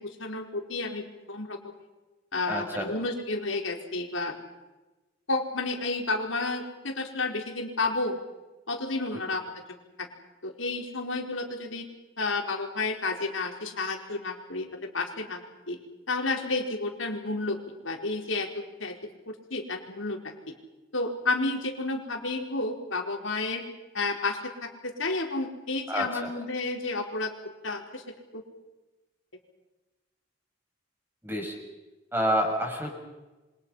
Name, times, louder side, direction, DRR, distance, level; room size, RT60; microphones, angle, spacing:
voice 1, 0.0-1.7 2.3-4.4 5.3-8.2 8.7-9.5 10.0-10.1 10.4-11.9 12.2-15.4 15.7-15.8 16.1-17.6 17.8-18.9 19.3-20.5 20.9-23.6 23.9-27.3 27.6-28.0 28.3-28.4, left 3 dB, 80° left, 2 dB, 4.7 m, -31 dB
voice 2, 2.5-2.9 9.1-9.2 25.9-26.3 31.2-31.5 32.1-32.9, equal, 10° right, 1 dB, 6.6 m, -28 dB
28.0 x 26.0 x 5.7 m, 1.1 s
head